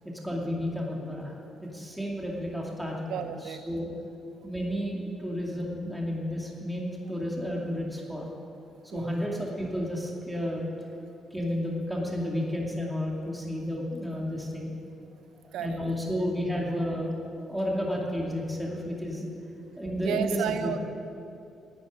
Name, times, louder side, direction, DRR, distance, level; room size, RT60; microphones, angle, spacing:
voice 1, 0.2-1.3 1.6-3.3 3.7-3.9 4.4-8.2 8.9-10.7 11.3-14.7 15.6-17.1 17.4-19.3 19.8-20.7, equal, 5° right, -2 dB, 2.5 m, -31 dB
voice 2, 3.1-3.6 7.0-7.1 8.9-9.3 15.5-15.8 20.0-20.8, right 9 dB, 85° right, 10 dB, 0.8 m, -33 dB
11.5 x 9.2 x 9.5 m, 2.7 s
cardioid pair, 90°, 0 cm